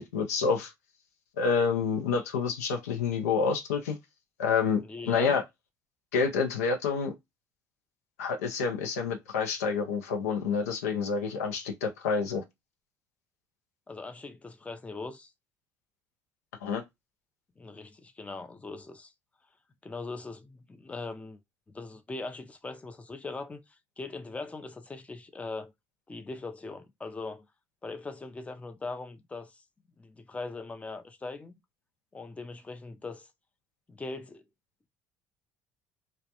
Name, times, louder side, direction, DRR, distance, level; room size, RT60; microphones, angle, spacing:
voice 1, 0.1-0.7 1.4-4.0 4.4-5.4 6.1-7.1 8.2-12.4 16.6-16.8, left 5 dB, 90° left, 0.5 m, -28 dB
voice 2, 4.8-5.4 13.9-15.3 17.6-19.1 19.8-21.4 21.7-25.7 26.1-27.4 27.8-29.6 30.0-31.5 32.1-33.3 33.9-34.4, left 3 dB, 15° left, 0.5 m, -40 dB
2.3 x 2.0 x 2.8 m
hypercardioid pair, 65°, 8 cm